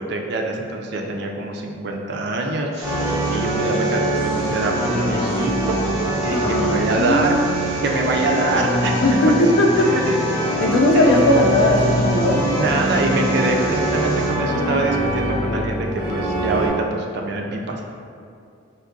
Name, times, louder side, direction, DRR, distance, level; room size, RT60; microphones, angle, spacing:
voice 1, 0.0-5.8 6.2-7.4 7.8-9.3 9.8-10.1 10.9-11.1 12.4-17.9, right 2 dB, 55° right, 1 dB, 0.3 m, -25 dB
sound 1, 2.7-14.3, right 1 dB, 35° right, 1.3 m, -38 dB
sound 2, 2.8-16.7, right 1 dB, 5° right, 0.7 m, -23 dB
voice 2, 6.3-7.3 9.0-9.9 10.6-12.4, left 1 dB, 65° left, 1 dB, 0.3 m, -18 dB
3.4 x 2.7 x 2.6 m, 2.4 s
head